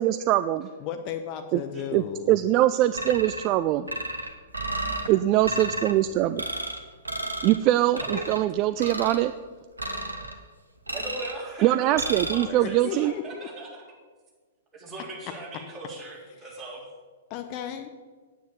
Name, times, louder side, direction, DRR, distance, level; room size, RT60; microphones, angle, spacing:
voice 1, 0.0-0.7 1.5-1.6 1.9-3.9 5.1-6.4 7.4-9.3 11.6-13.1, right 14 dB, 35° right, 12 dB, 0.4 m, -23 dB
voice 2, 0.8-2.4 12.3-13.5 17.3-17.9, left 9 dB, 35° left, 7 dB, 0.8 m, -35 dB
sound 1, 2.9-3.5 3.9-5.1 5.4-5.9 6.4-6.8 7.1-7.6 8.0-8.4 8.8-9.2 9.8-10.4 10.9-11.4 12.0-12.4, right 1 dB, 80° right, 1.4 m, -32 dB
voice 3, 8.0-8.3 10.9-13.8 14.7-16.8, right 2 dB, 15° right, -4 dB, 3.6 m, -39 dB
9.3 x 9.2 x 6.8 m, 1.5 s
figure-of-eight pair, 110°, 0 cm